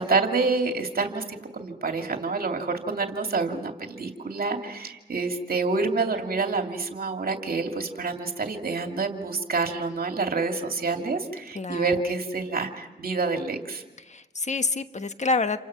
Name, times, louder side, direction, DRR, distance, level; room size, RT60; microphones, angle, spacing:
voice 1, 0.0-13.8, right 4 dB, 55° right, 4 dB, 2.5 m, -27 dB
voice 2, 11.5-11.9 14.1-15.6, left 3 dB, 40° left, 10 dB, 1.4 m, -27 dB
29.0 x 24.5 x 6.0 m, 1.1 s
cardioid pair, 50°, 18 cm